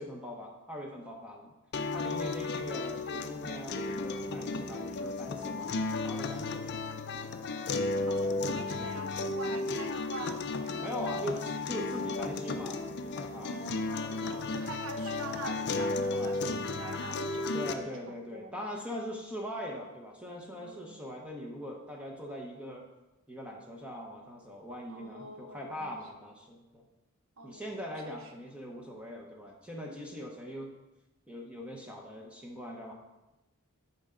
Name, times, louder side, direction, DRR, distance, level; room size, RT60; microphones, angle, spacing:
voice 1, 0.0-1.5 1.9-6.8 8.8-9.0 10.8-13.8 14.2-14.4 16.1-16.4 17.5-22.9 23.3-26.9 27.4-30.7 31.3-32.9, equal, 5° right, -1 dB, 0.8 m, -41 dB
sound 1, 1.7-17.7, left 3 dB, 50° left, 0.4 m, -34 dB
voice 2, 8.1-11.5 13.4-18.5 20.6-20.9 24.9-25.9 27.4-27.6 28.1-28.2, right 2 dB, 65° right, 5 dB, 0.9 m, -45 dB
10.5 x 4.3 x 3.8 m, 1.0 s
head